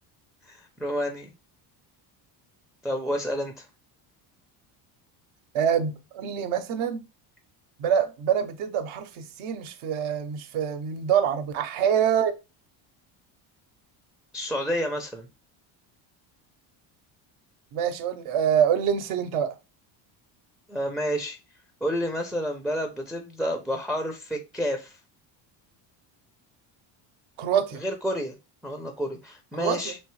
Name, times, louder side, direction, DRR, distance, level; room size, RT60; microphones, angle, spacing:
voice 1, 0.4-1.3 2.8-3.7 14.3-15.3 20.7-21.4 21.8-25.0 27.8-28.4 28.6-30.0, equal, ahead, 0.4 m, -30 dB
voice 2, 5.5-7.0 7.8-12.3 17.7-19.5 27.4-27.8 29.5-29.9, right 8 dB, 70° right, 0.7 m, -25 dB
3.3 x 2.7 x 3.0 m
cardioid pair, 100°, 49 cm